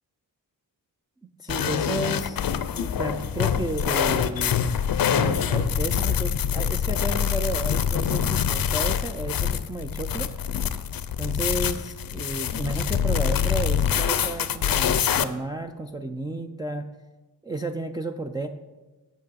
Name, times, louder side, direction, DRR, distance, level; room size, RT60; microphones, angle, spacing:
voice 1, 1.4-2.4 2.7-4.6 5.1-10.3 11.2-16.9 17.4-18.5, right 2 dB, 10° right, 3 dB, 0.4 m, -32 dB
sound 1, 1.5-15.2, left 8 dB, 55° left, 0.6 m, -25 dB
9.0 x 5.9 x 5.6 m, 1.2 s
cardioid pair, 75°, 42 cm